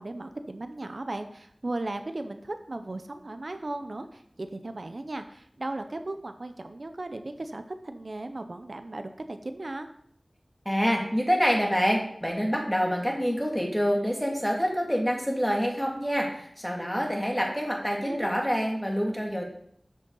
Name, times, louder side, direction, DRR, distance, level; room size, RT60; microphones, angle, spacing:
voice 1, 0.0-9.9 18.0-18.3, right 2 dB, 65° right, 8 dB, 0.8 m, -36 dB
voice 2, 10.7-19.4, equal, 5° left, 0 dB, 2.2 m, -26 dB
9.6 x 6.4 x 4.0 m, 0.66 s
wide cardioid pair, 40°, 0 cm